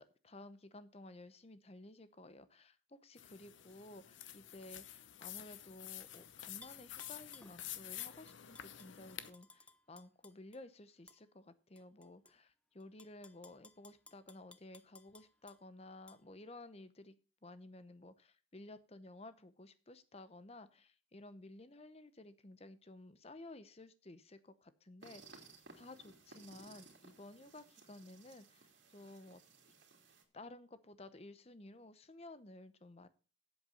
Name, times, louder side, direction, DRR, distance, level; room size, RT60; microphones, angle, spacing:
voice 1, 0.0-17.2 17.4-25.5 25.7-29.7 30.3-33.1, left 2 dB, 30° left, 13 dB, 0.8 m, -55 dB
sound 1, 3.2-9.3, left 12 dB, 75° left, 0.8 m, -49 dB
Tap / Glass, 6.6-7.5 8.0-10.6 11.1-11.2 11.8-12.3 12.8-15.6 16.1-16.2, left 2 dB, 5° left, 0.4 m, -60 dB
sound 2, 25.0-30.2, right 3 dB, 65° right, 2.6 m, -60 dB
8.0 x 8.0 x 6.5 m, 0.37 s
head